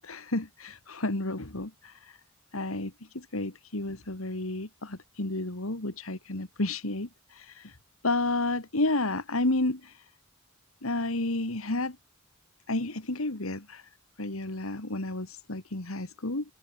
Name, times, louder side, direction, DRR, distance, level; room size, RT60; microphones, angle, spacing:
voice 1, 0.0-2.2 2.5-7.8 8.0-10.0 10.8-12.0 12.7-13.8 14.2-16.4, left 2 dB, 80° left, 2.4 m, -31 dB
head